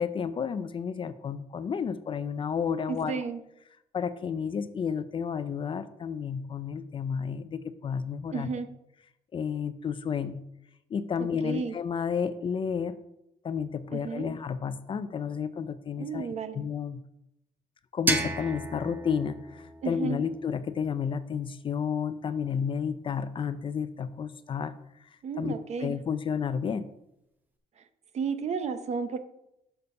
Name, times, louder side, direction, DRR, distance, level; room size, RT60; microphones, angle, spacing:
voice 1, 0.0-3.3 3.9-8.5 9.3-10.4 10.9-13.0 13.4-16.3 16.5-17.0 17.9-24.7 25.0-25.1 25.4-25.5 25.8-26.9, left 7 dB, 35° left, 12 dB, 0.4 m, -31 dB
voice 2, 2.9-3.4 8.3-8.7 11.4-11.7 13.9-14.3 16.0-16.6 19.8-20.2 25.2-25.9 28.1-29.2, right 5 dB, 45° right, 10 dB, 0.7 m, -32 dB
sound 1, 18.1-20.9, right 1 dB, 10° right, 0.9 m, -33 dB
6.7 x 6.7 x 5.4 m, 0.83 s
cardioid pair, 145°, 16 cm